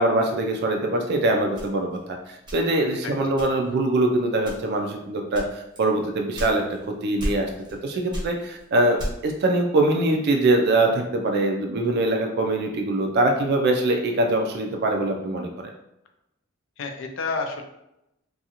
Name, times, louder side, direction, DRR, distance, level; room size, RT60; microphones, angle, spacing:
voice 1, 0.0-6.6 7.0-7.5 7.8-15.7, right 2 dB, 55° right, 3 dB, 0.3 m, -23 dB
sound 1, 1.6-2.9 3.4-3.8 4.4-4.9 5.3-6.9 7.2-7.8 8.1-9.4, equal, 20° right, 0.7 m, -33 dB
voice 2, 3.0-3.4 16.8-17.6, left 4 dB, 65° left, 5 dB, 0.4 m, -30 dB
2.5 x 2.3 x 2.8 m, 0.85 s
head